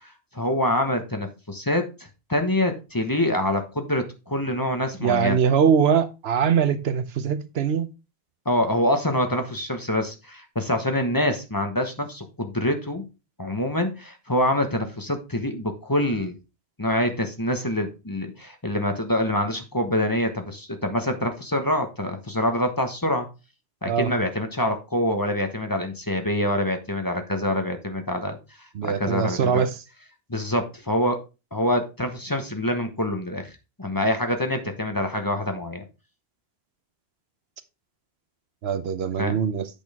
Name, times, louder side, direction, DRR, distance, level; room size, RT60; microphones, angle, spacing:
voice 1, 0.3-5.4 8.4-13.0 13.4-16.4 16.8-23.3 23.8-28.4 29.0-29.6 30.3-31.2 31.5-35.8 39.2-39.4, left 1 dB, 20° left, 1.1 m, -25 dB
voice 2, 5.0-7.9 23.9-24.1 28.7-29.8 38.6-39.7, right 7 dB, 85° right, 1.1 m, -22 dB
8.5 x 6.3 x 3.5 m
omnidirectional pair, 1.0 m